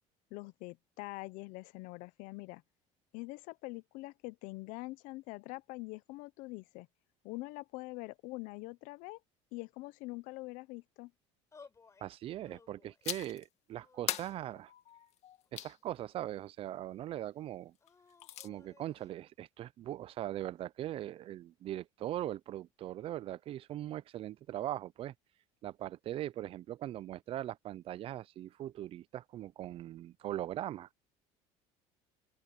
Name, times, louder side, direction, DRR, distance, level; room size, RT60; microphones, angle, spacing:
voice 1, 0.3-2.6 3.1-6.9 7.2-9.2 9.5-11.1, left 22 dB, 75° left, 0.7 m, -44 dB
sound 1, 11.5-12.1 12.4-13.1 13.8-14.7 15.4-16.4 17.8-19.1, left 5 dB, 20° left, 6.2 m, -61 dB
voice 2, 12.0-14.7 15.5-17.7 18.4-25.1 25.6-30.9, right 13 dB, 45° right, 0.5 m, -40 dB
sound 2, 13.0-13.5 14.1-15.8 17.9-18.5, left 12 dB, 55° left, 1.9 m, -40 dB
open air
cardioid pair, 130°, 13 cm